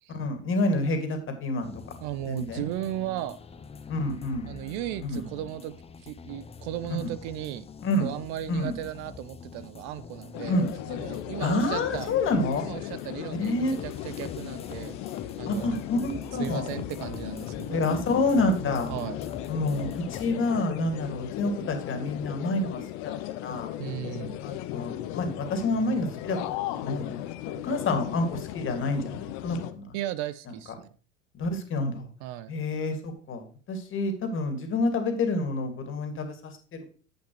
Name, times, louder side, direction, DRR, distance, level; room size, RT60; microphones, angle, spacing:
voice 1, 0.1-1.7 2.3-2.6 3.9-4.4 5.0-5.2 7.0-7.1 7.8-8.1 8.5-8.7 10.5-10.7 11.4-12.7 13.4-13.8 15.5-16.7 17.7-18.9 19.5-23.1 23.4-23.7 24.4-27.2 27.5-30.0 31.3-32.1 32.5-36.6, left 2 dB, 35° left, 6 dB, 2.3 m, -28 dB
sound 1, 1.6-20.4, left 5 dB, 15° left, 0.7 m, -45 dB
voice 2, 2.0-3.4 4.5-5.7 6.0-7.7 8.0-12.1 12.6-15.0 15.4-15.8 16.4-17.9 18.9-19.2 23.8-24.4 29.9-30.9 32.2-32.5, right 13 dB, 50° right, 15 dB, 0.6 m, -36 dB
sound 2, 10.3-29.7, left 13 dB, 50° left, 0.8 m, -37 dB
10.0 x 7.9 x 3.2 m, 0.40 s
hypercardioid pair, 80°, 36 cm